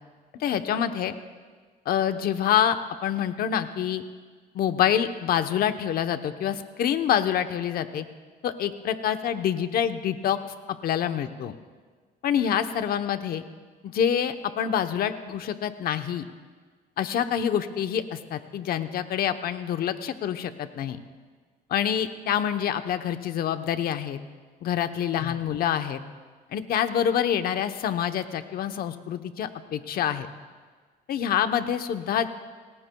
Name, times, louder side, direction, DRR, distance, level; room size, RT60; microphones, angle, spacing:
voice 1, 0.4-1.2 1.9-2.8 3.0-4.0 4.5-8.0 8.4-10.4 10.8-11.5 12.2-13.4 13.8-16.2 17.0-21.0 21.7-24.2 24.6-26.0 26.5-30.3 31.1-32.3, left 9 dB, 60° left, 9 dB, 0.9 m, -26 dB
27.0 x 18.5 x 2.3 m, 1.5 s
cardioid pair, 110°, 17 cm